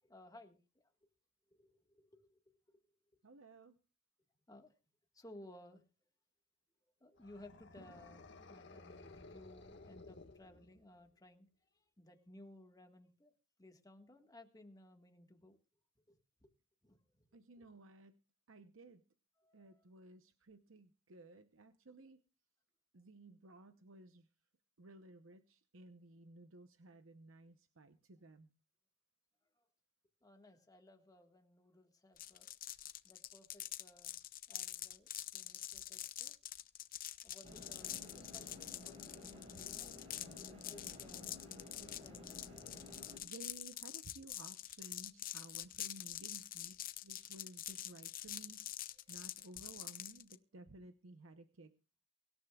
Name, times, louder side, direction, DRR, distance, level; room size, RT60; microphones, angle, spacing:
voice 1, 0.1-0.9 1.5-2.8 4.5-4.7 5.1-5.8 7.0-11.5 12.0-13.3 13.6-15.6 16.1-16.5 16.8-17.2 17.6-17.7 19.4-19.8 30.2-32.5 33.0-34.2 34.5-36.4 37.2-39.9 40.4-41.5 41.8-42.5 49.0-49.1, left 1 dB, 20° left, 5 dB, 1.6 m, -60 dB
voice 2, 3.2-3.8 17.3-18.1 18.5-19.0 19.5-22.2 22.9-24.3 24.8-28.5 43.2-46.8 47.0-48.6 49.1-51.7, right 2 dB, 85° right, 9 dB, 0.9 m, -56 dB
sound 1, 7.2-11.0, left 2 dB, 60° left, 1.7 m, -56 dB
sound 2, 32.2-50.4, left 12 dB, 45° left, 0.8 m, -46 dB
sound 3, 37.4-43.2, left 2 dB, 30° right, 6.4 m, -53 dB
24.0 x 13.0 x 2.4 m, 0.33 s
head